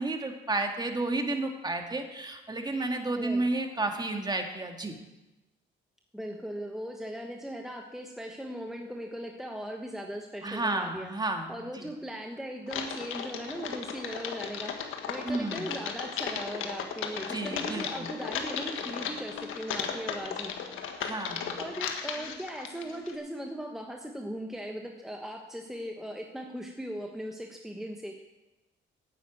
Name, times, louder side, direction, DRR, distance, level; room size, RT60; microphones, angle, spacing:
voice 1, 0.0-4.9 10.4-11.9 15.3-15.7 17.3-18.1 21.0-21.5, right 2 dB, 20° right, 4 dB, 2.1 m, -32 dB
voice 2, 6.1-11.1 11.5-20.5 21.6-28.2, equal, ahead, 1 dB, 1.2 m, -38 dB
Typing, 12.7-23.1, left 7 dB, 90° left, 1.5 m, -36 dB
9.2 x 9.0 x 9.2 m, 1.0 s
cardioid pair, 90°, 20 cm